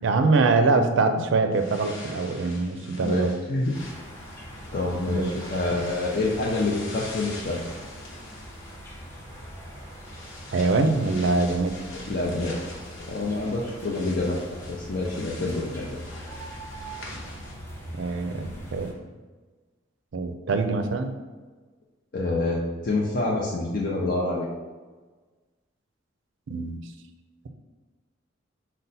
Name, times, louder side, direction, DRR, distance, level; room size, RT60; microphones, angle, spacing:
voice 1, 0.0-3.3 5.1-5.3 5.7-5.8 10.5-11.8 17.9-18.9 20.1-21.1 26.5-26.8, right 3 dB, 65° right, 7 dB, 0.4 m, -23 dB
sound 1, 1.5-17.5, left 2 dB, 85° left, 1.0 m, -44 dB
voice 2, 2.7-3.7 4.7-7.6 11.9-12.6 13.1-14.4 14.7-15.9 22.1-24.5, left 2 dB, 45° left, -3 dB, 0.5 m, -27 dB
sound 2, 3.7-18.9, equal, 10° left, 0.7 m, -42 dB
5.4 x 2.1 x 4.0 m, 1.4 s
head